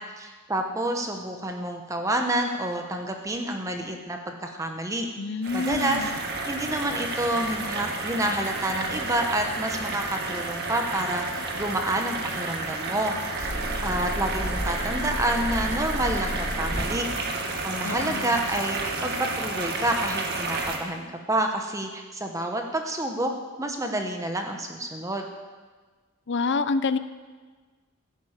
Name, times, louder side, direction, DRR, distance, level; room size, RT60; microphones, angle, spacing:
voice 1, 0.0-5.1 5.5-6.1 6.5-11.3 11.6-13.5 13.8-17.1 17.6-23.3 23.6-25.3, right 1 dB, 15° right, 4 dB, 1.0 m, -28 dB
voice 2, 5.2-6.2 17.8-18.4 26.3-27.0, left 4 dB, 55° left, 13 dB, 0.6 m, -27 dB
sound 1, 5.4-20.8, right 3 dB, 50° right, 1.8 m, -31 dB
sound 2, 13.4-17.2, equal, 30° left, 3.5 m, -32 dB
15.5 x 9.4 x 7.4 m, 1.4 s
head